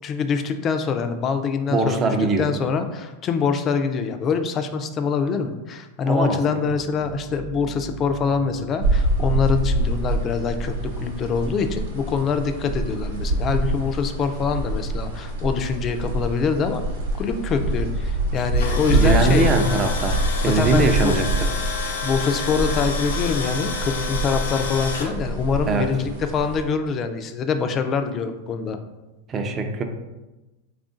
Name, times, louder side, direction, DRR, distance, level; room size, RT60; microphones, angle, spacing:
voice 1, 0.0-16.8 17.2-19.5 20.5-21.3 22.0-28.8, left 5 dB, 35° left, 8 dB, 0.4 m, -24 dB
voice 2, 1.7-2.5 6.0-6.4 18.9-21.3 25.7-25.9 29.3-29.8, right 2 dB, 30° right, 6 dB, 0.5 m, -21 dB
sound 1, 6.7-21.8 22.0-23.1 23.5-23.6 23.9-24.6, right 7 dB, 45° right, 0.8 m, -44 dB
sound 2, 8.8-26.6, right 1 dB, 85° right, 0.8 m, -25 dB
Tools, 18.4-25.1, left 3 dB, 85° left, 0.6 m, -30 dB
3.4 x 2.4 x 3.8 m, 1.1 s
hypercardioid pair, 115°, 0 cm